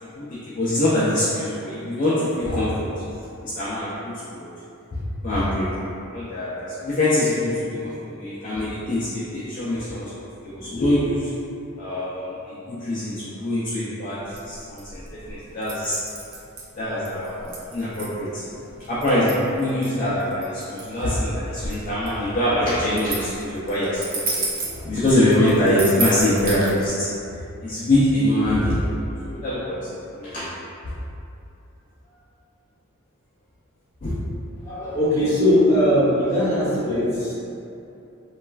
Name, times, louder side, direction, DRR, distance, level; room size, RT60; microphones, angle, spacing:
voice 1, 0.1-3.0 3.4-4.1 4.4-4.5 5.2-5.7 6.1-10.1 10.4-11.3 11.8-16.0 16.8-18.4 18.9-24.4 24.8-28.8 29.2-29.8 30.2-30.4 34.0-34.1, left 1 dB, 40° left, -10 dB, 0.4 m, -24 dB
sound 1, 14.2-26.9, right 3 dB, 45° right, 0.5 m, -33 dB
voice 2, 34.6-37.3, left 1 dB, 15° left, -11 dB, 0.7 m, -20 dB
3.0 x 2.3 x 2.3 m, 2.7 s
head